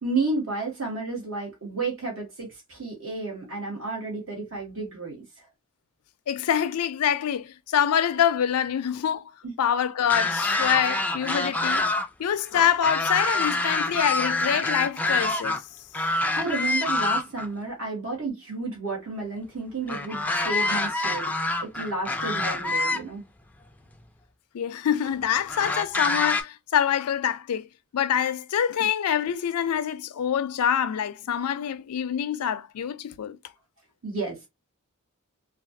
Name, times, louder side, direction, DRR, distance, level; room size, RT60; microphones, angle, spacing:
voice 1, 0.0-5.4 9.4-9.5 16.2-21.3 21.6-23.2 34.0-34.5, right 3 dB, 60° right, 1.4 m, -32 dB
voice 2, 6.3-9.2 9.6-11.9 12.2-15.6 24.5-27.7 27.9-33.4, left 9 dB, 80° left, 0.4 m, -25 dB
sound 1, 10.0-12.1 12.4-15.6 15.9-17.5 19.9-23.0 23.9-24.0 25.5-26.4, left 2 dB, 5° left, 0.3 m, -26 dB
3.1 x 2.3 x 2.6 m
head